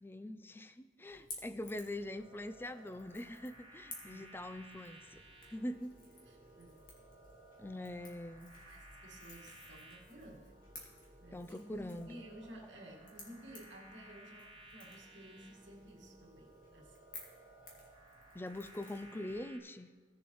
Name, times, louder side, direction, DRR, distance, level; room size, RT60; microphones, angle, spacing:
voice 1, 0.0-5.2 5.5-6.0 7.6-8.5 11.3-12.2 18.3-19.9, left 1 dB, 10° left, 10 dB, 0.3 m, -43 dB
Crackle / Crack, 1.1-19.4, left 3 dB, 50° left, 2.0 m, -56 dB
sound 1, 2.1-19.6, right 1 dB, 30° right, 1.1 m, -59 dB
voice 2, 4.0-4.4 6.2-6.8 8.7-17.0, right 1 dB, 75° right, -1 dB, 1.8 m, -54 dB
17.0 x 7.0 x 3.1 m, 1.5 s
head